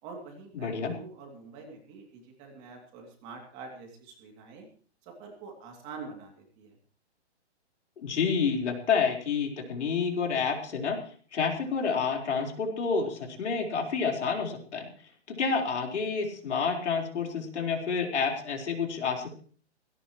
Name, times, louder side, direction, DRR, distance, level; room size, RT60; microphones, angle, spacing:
voice 1, 0.0-4.7 5.0-6.8, right 4 dB, 20° right, 2 dB, 2.7 m, -46 dB
voice 2, 0.5-0.9 8.0-11.0 11.3-14.9 15.3-19.4, left 5 dB, 75° left, 2 dB, 4.5 m, -29 dB
17.5 x 17.0 x 3.1 m, 0.43 s
hypercardioid pair, 175°, 35 cm